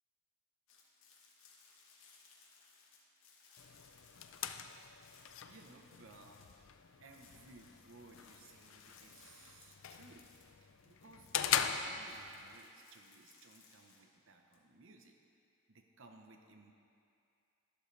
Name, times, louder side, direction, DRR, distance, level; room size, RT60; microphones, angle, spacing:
sound 1, 0.7-6.7 7.0-14.6, left 4 dB, 85° left, 1.6 m, -64 dB
sound 2, 3.6-12.6, left 8 dB, 65° left, 0.5 m, -41 dB
voice 1, 5.4-6.4 7.0-10.3 10.6-11.3 11.7-15.2 15.7-16.7, right 3 dB, 65° right, 3 dB, 0.9 m, -60 dB
12.0 x 11.5 x 3.3 m, 2.5 s
head